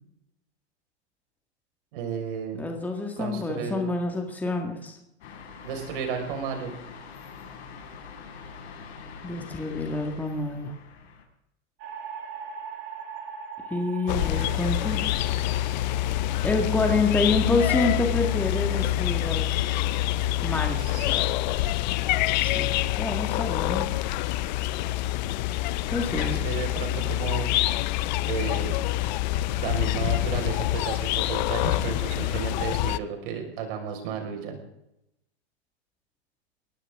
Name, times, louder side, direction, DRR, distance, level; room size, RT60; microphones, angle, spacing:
voice 1, 1.9-2.7 3.2-3.8 5.6-6.8 20.8-21.6 26.1-27.5 28.2-28.8 29.5-34.6, right 7 dB, 50° right, 4 dB, 5.3 m, -33 dB
voice 2, 2.6-5.0 9.2-10.7 13.7-15.0 16.4-19.6 20.4-21.3 22.4-22.7 23.0-23.9 25.9-26.4, left 3 dB, 5° left, 2 dB, 1.9 m, -27 dB
sound 1, 5.2-11.2, left 5 dB, 75° left, 6.4 m, -44 dB
sound 2, 11.8-22.1, right 6 dB, 35° right, 4.3 m, -43 dB
sound 3, 14.1-33.0, left 14 dB, 40° left, 0.6 m, -26 dB
21.5 x 18.0 x 3.7 m, 0.82 s
supercardioid pair, 155°, 33 cm